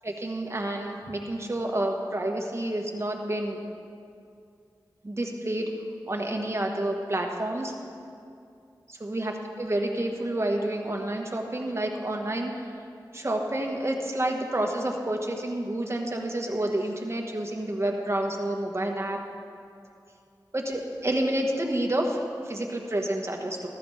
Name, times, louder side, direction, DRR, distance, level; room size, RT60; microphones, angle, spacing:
voice 1, 0.0-3.6 5.0-5.7 6.1-7.7 8.9-12.5 13.1-19.2 20.5-23.7, right 1 dB, 35° right, 1 dB, 1.6 m, -29 dB
14.5 x 13.0 x 3.5 m, 2.4 s
cardioid pair, 40°, 8 cm